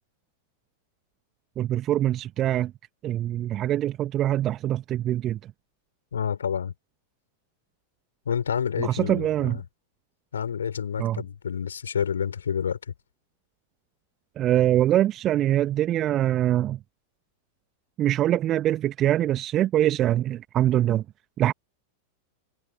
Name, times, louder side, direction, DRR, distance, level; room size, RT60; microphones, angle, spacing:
voice 1, 1.6-2.7 3.0-5.5 8.8-9.6 11.0-11.2 14.4-16.8 18.0-21.0 21.4-21.5, right 12 dB, 30° right, 1.7 m, -23 dB
voice 2, 6.1-6.7 8.3-9.6 10.3-12.8, left 7 dB, 70° left, 5.5 m, -28 dB
figure-of-eight pair, 90°, 0 cm